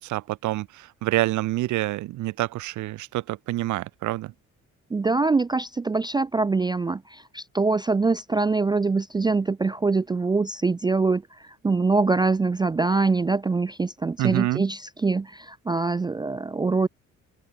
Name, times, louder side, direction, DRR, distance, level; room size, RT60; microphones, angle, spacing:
voice 1, 0.0-4.3 14.2-14.6, right 17 dB, 75° right, 0.5 m, -27 dB
voice 2, 4.9-16.9, right 3 dB, 15° right, 0.3 m, -24 dB
cardioid pair, 90°, 30 cm